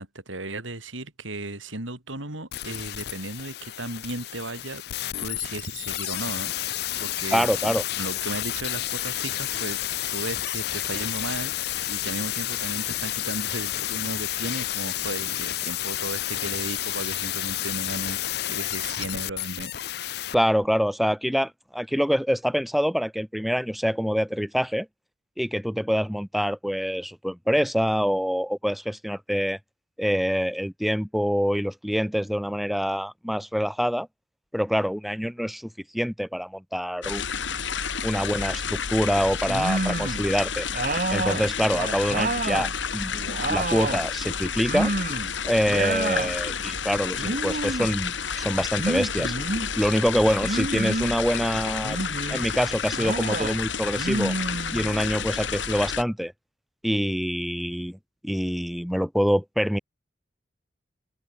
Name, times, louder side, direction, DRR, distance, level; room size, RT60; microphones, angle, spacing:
voice 1, 0.0-4.8 5.2-9.8 10.1-19.7, right 2 dB, 85° right, 4.7 m, -35 dB
sound 1, 2.5-20.4 20.6-20.7, left 14 dB, 55° left, 0.4 m, -30 dB
voice 2, 7.3-7.8 20.3-24.9 25.4-29.6 30.0-34.1 34.5-37.2 38.0-40.7 41.1-43.2 43.5-44.9 45.4-49.4 49.8-52.0 52.3-54.3 54.7-56.3 56.8-58.0 58.2-59.8, equal, ahead, 1.3 m, -25 dB
sound 2, 37.0-56.0, left 6 dB, 70° left, 2.0 m, -30 dB
sound 3, 39.5-40.3 40.7-42.7 43.1-44.1 44.6-45.3 45.6-46.3 47.2-47.9 48.8-49.7 50.4-51.2 51.8-52.4 52.9-53.6 54.0-55.1, right 2 dB, 45° right, 1.3 m, -29 dB
open air
head